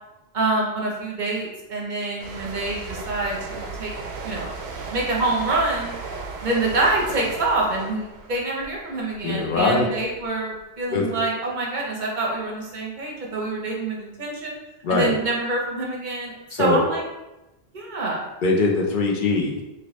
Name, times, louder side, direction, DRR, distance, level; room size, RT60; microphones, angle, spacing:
voice 1, 0.3-3.9 4.2-4.6 4.9-5.9 6.4-14.5 14.9-17.0 17.7-18.3, right 2 dB, 50° right, -2 dB, 0.8 m, -26 dB
sound 1, 2.2-9.7 10.0-10.3, right 4 dB, 80° right, 0.8 m, -36 dB
voice 2, 9.2-9.9 10.9-11.0 14.8-15.1 16.5-16.8 18.4-19.6, left 3 dB, 55° left, -1 dB, 0.7 m, -21 dB
2.9 x 2.9 x 3.0 m, 0.99 s
omnidirectional pair, 1.1 m